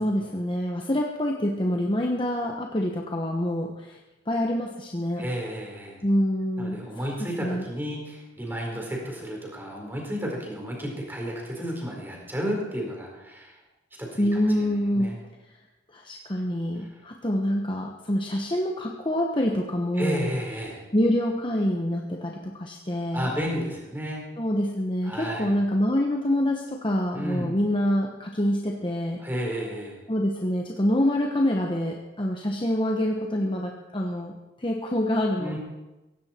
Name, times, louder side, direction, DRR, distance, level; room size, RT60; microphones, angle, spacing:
voice 1, 0.0-4.0 4.3-5.2 6.0-6.8 7.2-7.7 14.2-15.2 15.9-20.3 20.9-23.3 24.4-29.2 30.1-35.6, left 1 dB, 25° left, 1 dB, 1.1 m, -26 dB
voice 2, 5.2-6.0 6.6-13.5 14.0-15.2 20.0-20.8 23.1-24.2 25.0-25.5 27.1-27.6 29.2-30.0 35.4-35.6, equal, 10° right, -1 dB, 4.3 m, -32 dB
17.0 x 16.0 x 4.4 m, 1.1 s
head